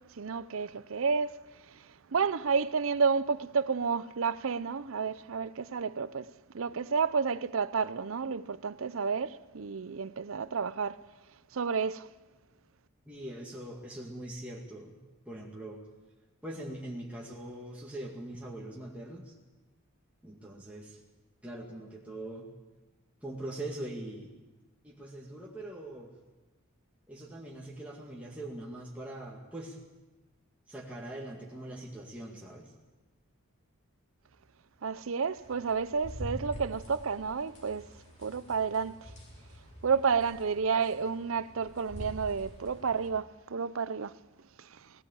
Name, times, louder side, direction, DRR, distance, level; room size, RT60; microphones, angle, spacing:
voice 1, 0.0-1.4 2.1-6.3 6.5-11.0 11.5-12.1 34.8-37.9 38.2-39.0 39.8-44.2 44.6-44.7, right 5 dB, 65° right, 0.6 m, -31 dB
voice 2, 13.1-15.0 15.3-15.8 16.4-19.3 20.2-21.0 21.4-22.5 23.2-24.3 24.8-26.2 27.1-29.8 30.7-32.7, right 1 dB, 5° right, 2.2 m, -42 dB
sound 1, 35.4-43.1, equal, 35° left, 3.8 m, -46 dB
18.0 x 17.0 x 8.5 m
head